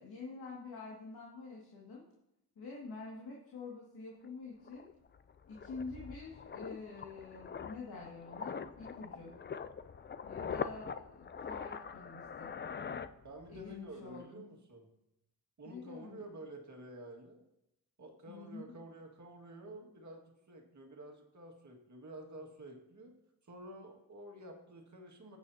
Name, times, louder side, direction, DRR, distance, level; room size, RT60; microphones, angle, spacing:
voice 1, 0.0-2.0 2.6-4.9 5.5-9.4 10.2-12.6 13.5-14.5 15.6-16.3 18.3-18.7, left 4 dB, 70° left, -4 dB, 2.2 m, -47 dB
sound 1, 4.3-4.4 4.7-13.7 14.0-14.2, left 6 dB, 30° left, 0.4 m, -43 dB
voice 2, 13.2-14.9 15.6-17.4 18.0-23.2 23.4-25.4, right 1 dB, 45° right, 2 dB, 1.9 m, -50 dB
19.0 x 8.9 x 2.8 m, 0.85 s
wide cardioid pair, 130°, 39 cm